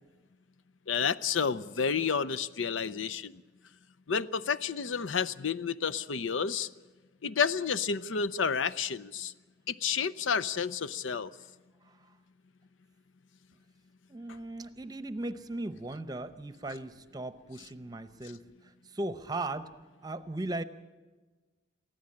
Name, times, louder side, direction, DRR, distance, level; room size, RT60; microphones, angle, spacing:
voice 1, 0.9-3.3 4.1-6.7 7.2-9.3 9.7-11.3, left 6 dB, 85° left, 15 dB, 0.6 m, -30 dB
voice 2, 11.8-12.2 14.1-19.7 20.0-20.6, right 2 dB, 20° right, 12 dB, 0.8 m, -38 dB
23.5 x 15.5 x 8.7 m, 1.3 s
head